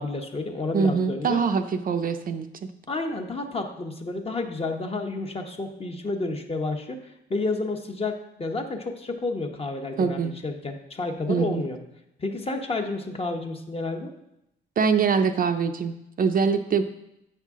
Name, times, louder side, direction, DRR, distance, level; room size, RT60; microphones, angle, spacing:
voice 1, 0.0-1.4 2.9-11.8 12.2-14.1, left 3 dB, 30° left, 4 dB, 1.0 m, -30 dB
voice 2, 0.7-2.5 10.0-10.3 11.3-11.6 14.8-16.8, right 5 dB, 45° right, 7 dB, 0.5 m, -23 dB
8.2 x 5.6 x 3.6 m, 0.84 s
cardioid pair, 90°, 20 cm